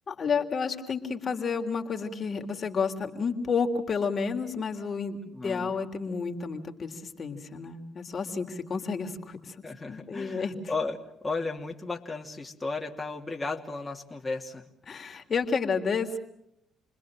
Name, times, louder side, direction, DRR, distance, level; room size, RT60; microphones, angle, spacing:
voice 1, 0.1-9.5 9.9-10.5 14.9-16.2, left 5 dB, 45° left, 4 dB, 3.4 m, -30 dB
voice 2, 5.3-5.7 9.6-14.7, left 3 dB, 20° left, 0 dB, 2.9 m, -34 dB
30.0 x 21.0 x 7.7 m, 0.77 s
supercardioid pair, 60°, 0 cm